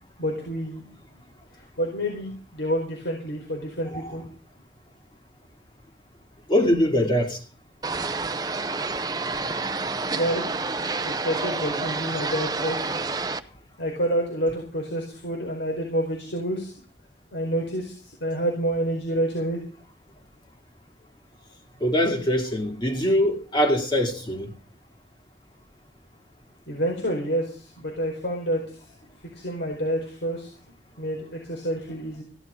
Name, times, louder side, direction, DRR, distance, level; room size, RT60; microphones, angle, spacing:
voice 1, 0.2-0.9 1.8-4.3 10.1-10.4 11.0-12.8 13.8-16.7 17.3-19.6 26.7-28.8 29.3-30.5 31.0-32.2, equal, 80° left, 4.7 m, -28 dB
voice 2, 6.5-7.4 21.8-24.5, equal, 25° left, 2.5 m, -23 dB
sound 1, 7.8-13.4, right 3 dB, 20° right, 0.7 m, -29 dB
17.0 x 11.5 x 5.1 m
head